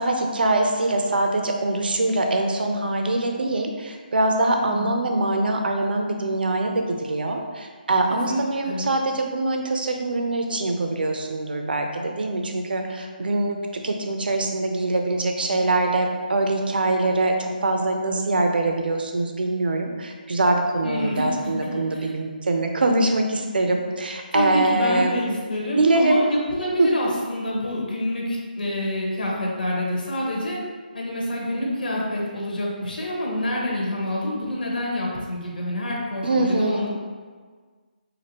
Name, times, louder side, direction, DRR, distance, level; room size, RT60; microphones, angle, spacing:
voice 1, 0.0-17.4 17.6-25.2 25.7-26.2 26.8-26.9 36.2-36.8, right 2 dB, 70° right, 3 dB, 0.5 m, -23 dB
voice 2, 4.5-5.0 8.1-8.9 20.8-21.3 21.9-22.1 24.3-30.6 30.9-36.9, left 1 dB, 60° left, -3 dB, 1.2 m, -27 dB
5.8 x 2.6 x 2.9 m, 1.5 s
hypercardioid pair, 180°, 5 cm